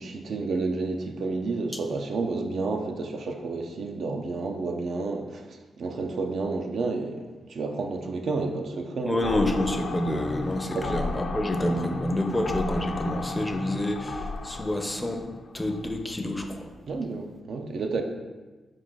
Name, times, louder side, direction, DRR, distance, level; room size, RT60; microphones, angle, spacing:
voice 1, 0.0-9.4 10.7-11.0 16.9-18.0, right 3 dB, 70° right, 4 dB, 0.4 m, -30 dB
voice 2, 9.0-16.7, left 1 dB, 15° left, 4 dB, 0.4 m, -28 dB
sound 1, 9.2-15.9, left 3 dB, 85° left, 0.5 m, -34 dB
4.6 x 2.3 x 3.7 m, 1.2 s
cardioid pair, 75°, 0 cm